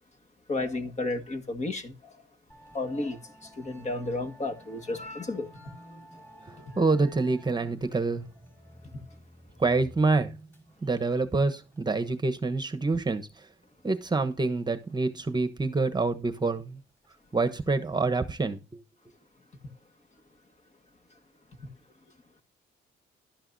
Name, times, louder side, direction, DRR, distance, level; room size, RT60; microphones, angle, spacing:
voice 1, 0.5-2.1 2.7-3.2 3.6-5.5, left 2 dB, 35° left, 1.8 m, -32 dB
Musical instrument, 2.5-18.0, equal, 10° left, 5.1 m, -53 dB
voice 2, 6.5-8.3 9.6-10.4 10.8-13.5 13.8-16.8 17.3-18.6, right 3 dB, 20° right, 1.1 m, -27 dB
12.0 x 11.0 x 2.7 m
cardioid pair, 90°, 20 cm